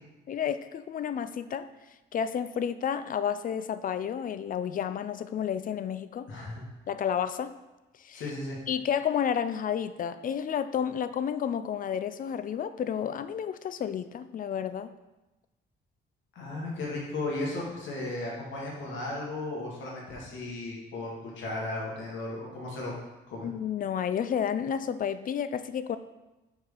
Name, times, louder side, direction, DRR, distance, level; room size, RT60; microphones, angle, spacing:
voice 1, 0.3-1.7 2.1-6.3 6.9-7.6 8.0-8.2 8.7-14.9 23.4-26.0, left 8 dB, 45° left, 12 dB, 0.4 m, -31 dB
voice 2, 6.3-6.6 8.1-8.6 16.3-22.9 23.3-23.5, left 2 dB, 70° left, -3 dB, 1.6 m, -35 dB
4.8 x 4.4 x 5.2 m, 1.1 s
cardioid pair, 90°, 20 cm